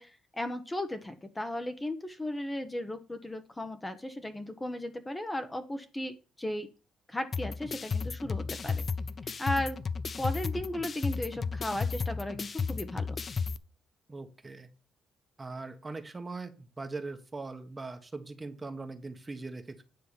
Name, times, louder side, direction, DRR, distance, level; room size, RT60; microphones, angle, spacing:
voice 1, 0.0-6.7 7.1-8.8 9.4-9.8 10.2-13.2, left 1 dB, 15° left, 8 dB, 1.2 m, -35 dB
sound 1, 7.3-13.6, left 5 dB, 45° left, 0.6 m, -33 dB
voice 2, 14.1-14.7 15.4-19.8, right 3 dB, 25° right, 8 dB, 1.3 m, -41 dB
9.7 x 3.7 x 7.0 m, 0.34 s
cardioid pair, 80°, 0 cm